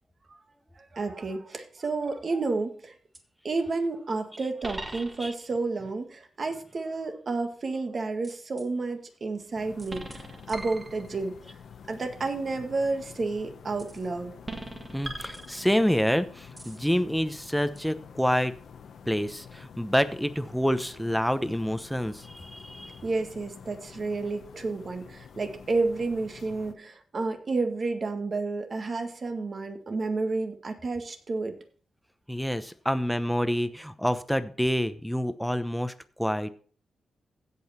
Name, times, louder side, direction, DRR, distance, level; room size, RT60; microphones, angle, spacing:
voice 1, 0.8-2.9 3.4-11.4 11.9-14.3 23.0-31.6, right 3 dB, 45° right, 5 dB, 1.8 m, -31 dB
sound 1, 2.0-2.5 3.1-3.2 4.6-5.5 8.2-8.7 9.8-11.4 13.8-14.1 14.4-16.0 16.6-16.9 17.8-17.9, right 2 dB, 30° right, 1.7 m, -41 dB
voice 2, 4.9-5.3 14.9-18.5 19.1-23.0 32.3-36.5, equal, ahead, 12 dB, 0.8 m, -27 dB
sound 2, 9.5-26.7, left 7 dB, 75° left, 1.0 m, -48 dB
16.0 x 5.5 x 4.2 m, 0.43 s
cardioid pair, 90°, 0 cm